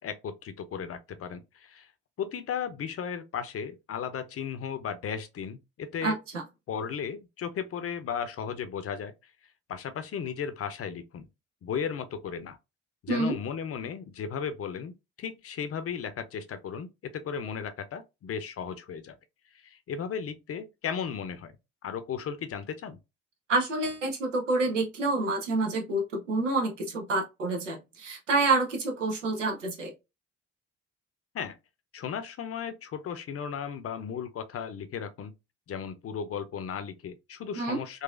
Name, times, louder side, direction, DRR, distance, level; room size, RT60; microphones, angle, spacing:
voice 1, 0.0-1.9 2.2-6.2 6.7-9.1 9.7-11.3 11.6-12.6 13.0-19.1 19.5-21.5 21.8-23.0 31.3-31.6 31.9-35.3 35.7-38.0, left 7 dB, 40° left, 0.6 m, -35 dB
voice 2, 23.5-29.9 37.6-37.8, right 3 dB, 90° right, 0.6 m, -28 dB
3.9 x 2.5 x 2.4 m
figure-of-eight pair, 40°, 36 cm